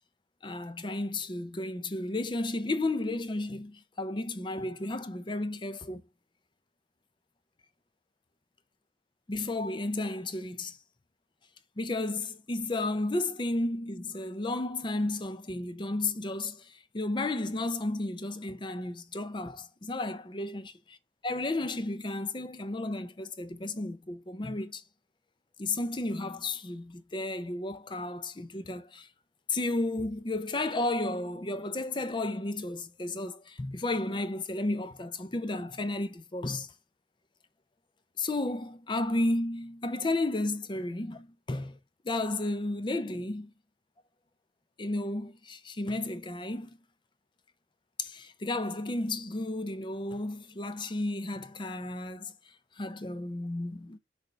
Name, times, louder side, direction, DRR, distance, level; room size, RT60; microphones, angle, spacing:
voice 1, 0.4-6.0 9.3-10.8 11.8-20.7 21.2-24.8 25.6-29.1 29.5-36.7 38.2-41.8 42.0-43.5 44.8-46.7 48.0-52.3 52.8-54.0, left 2 dB, 25° left, 0.5 m, -33 dB
6.6 x 3.5 x 4.3 m
head